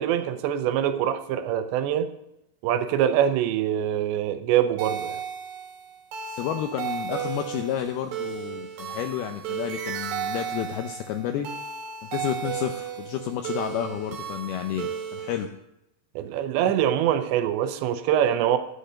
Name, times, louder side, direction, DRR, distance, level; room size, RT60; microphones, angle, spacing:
voice 1, 0.0-2.1 2.6-5.2 16.2-18.6, right 10 dB, 90° right, 9 dB, 3.0 m, -24 dB
sound 1, 4.8-15.5, right 8 dB, 75° right, 3.5 m, -34 dB
voice 2, 6.3-11.5 12.1-15.5, left 10 dB, 80° left, 6 dB, 2.3 m, -31 dB
13.0 x 8.1 x 6.5 m, 0.86 s
omnidirectional pair, 5.1 m